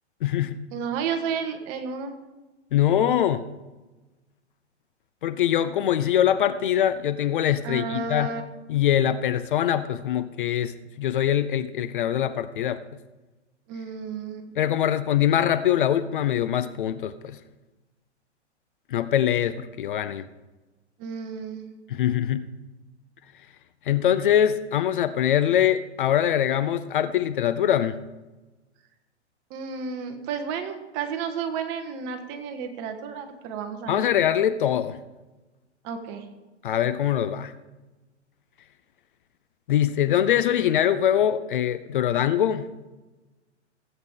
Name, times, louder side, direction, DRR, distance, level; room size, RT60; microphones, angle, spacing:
voice 1, 0.2-0.6 2.7-3.5 5.2-8.4 8.7-12.8 14.6-17.4 18.9-20.3 21.9-22.5 23.9-28.0 33.9-35.0 36.6-37.5 39.7-42.7, left 10 dB, 45° left, 13 dB, 0.6 m, -23 dB
voice 2, 0.7-2.1 7.6-8.4 13.7-14.5 21.0-21.7 29.5-34.1 35.8-36.2, right 6 dB, 30° right, 6 dB, 1.3 m, -32 dB
16.0 x 8.1 x 3.7 m, 1.1 s
figure-of-eight pair, 120°, 36 cm